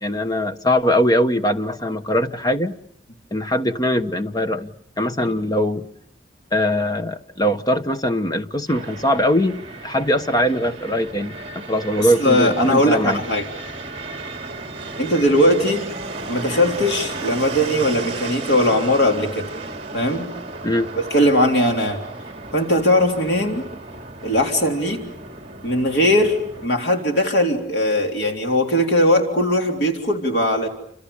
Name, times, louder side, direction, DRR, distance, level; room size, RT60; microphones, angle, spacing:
voice 1, 0.0-2.7 3.3-4.7 5.0-5.9 6.5-13.2 20.6-20.9, equal, 20° left, 1.1 m, -21 dB
Fixed-wing aircraft airplane, 8.7-26.7, right 3 dB, 30° right, 2.5 m, -34 dB
voice 2, 12.2-13.4 15.0-15.8 16.3-19.5 19.9-20.3 20.9-22.0 22.5-23.6 24.2-25.0 25.6-30.7, left 1 dB, 70° left, 3.5 m, -19 dB
29.5 x 27.0 x 7.0 m
head